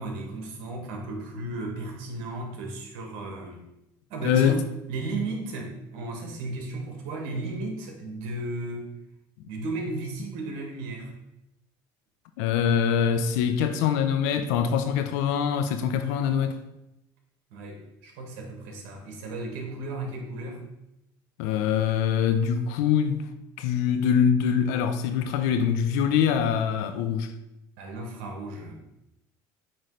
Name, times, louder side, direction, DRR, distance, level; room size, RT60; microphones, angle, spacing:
voice 1, 0.0-3.6 4.1-4.6 4.9-8.9 9.5-11.1 17.5-20.6 27.8-28.8, right 2 dB, 80° right, 1.6 m, -34 dB
voice 2, 4.2-4.6 12.4-16.6 21.4-23.3 23.6-27.3, left 8 dB, 85° left, 0.6 m, -24 dB
8.7 x 3.2 x 3.9 m
supercardioid pair, 95°, 9 cm